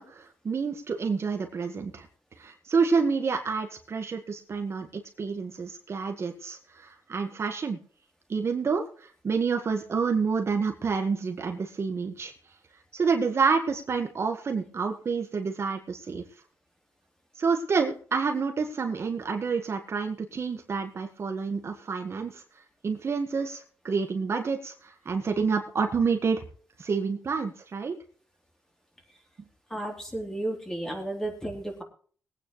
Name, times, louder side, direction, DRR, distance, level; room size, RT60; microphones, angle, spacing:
voice 1, 0.0-2.1 2.4-7.8 8.3-12.3 12.9-16.2 17.4-22.4 22.8-26.4 26.8-28.0, right 5 dB, 45° right, 4 dB, 1.7 m, -28 dB
voice 2, 29.7-31.8, right 1 dB, 10° left, 1 dB, 3.6 m, -33 dB
21.5 x 9.2 x 3.2 m, 0.43 s
wide cardioid pair, 120°, 6 cm